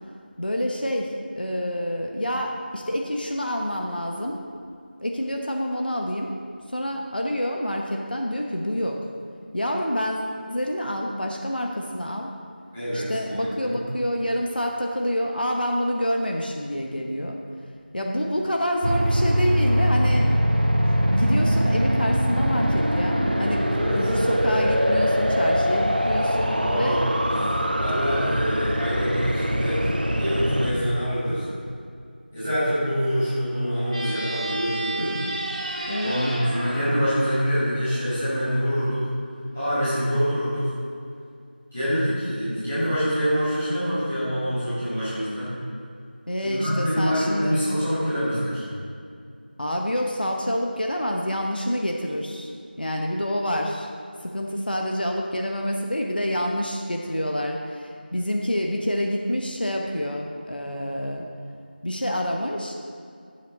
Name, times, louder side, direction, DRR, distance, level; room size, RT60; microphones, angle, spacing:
voice 1, 0.4-4.4 5.0-6.3 6.7-9.0 9.5-12.3 12.9-17.4 17.9-20.3 20.9-27.1 35.9-36.3 46.3-47.6 49.6-52.5 52.8-53.9 54.2-61.2 61.8-62.7, equal, 60° left, 1 dB, 1.0 m, -27 dB
voice 2, 12.7-13.8 23.7-24.0 26.4-31.5 32.3-35.2 36.0-39.1 39.5-40.7 41.7-45.5 46.4-48.7, equal, 10° left, -16 dB, 2.2 m, -26 dB
sound 1, 18.8-30.7, equal, 60° right, 1.1 m, -22 dB
sound 2, 33.9-38.3, right 1 dB, 35° right, 1.7 m, -32 dB
14.5 x 7.6 x 4.0 m, 2.3 s
figure-of-eight pair, 180°, 6 cm